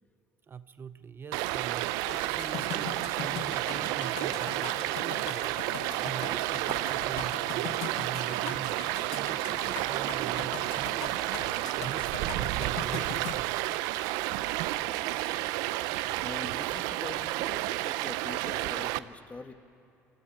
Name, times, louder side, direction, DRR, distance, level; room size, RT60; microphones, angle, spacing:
voice 1, 0.5-11.2 11.5-13.5 16.0-16.3, right 6 dB, 35° right, 13 dB, 0.7 m, -43 dB
Stream, 1.3-19.0, right 17 dB, 85° right, 0.5 m, -31 dB
sound 1, 2.1-13.4, left 12 dB, 80° left, 0.8 m, -42 dB
sound 2, 3.4-12.0, right 2 dB, 15° right, 3.4 m, -53 dB
voice 2, 14.7-15.6 16.2-19.5, left 3 dB, 25° left, 9 dB, 1.3 m, -45 dB
24.5 x 15.0 x 10.0 m, 2.9 s
supercardioid pair, 85°, 6 cm